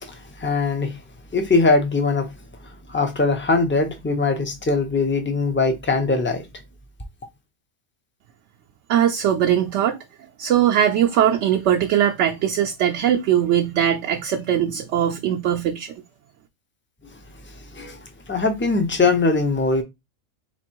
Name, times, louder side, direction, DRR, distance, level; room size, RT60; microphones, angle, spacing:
voice 1, 0.0-1.0 1.3-2.3 2.9-6.4 17.7-18.0 18.3-19.8, left 3 dB, 15° left, 0.5 m, -21 dB
voice 2, 8.9-10.0 10.4-15.9, right 10 dB, 70° right, 0.8 m, -20 dB
3.3 x 3.0 x 4.5 m
omnidirectional pair, 1.3 m